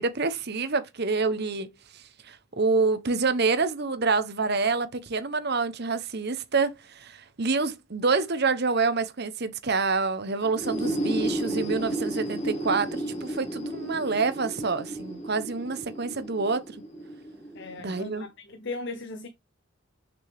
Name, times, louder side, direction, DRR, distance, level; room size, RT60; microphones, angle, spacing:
voice 1, 0.0-1.7 2.3-16.7 17.8-18.3, right 4 dB, 50° right, 0.9 m, -27 dB
sound 1, 10.4-18.1, right 1 dB, 35° left, 2.7 m, -32 dB
voice 2, 17.5-19.3, left 3 dB, 55° left, 0.7 m, -37 dB
6.2 x 5.9 x 3.5 m
head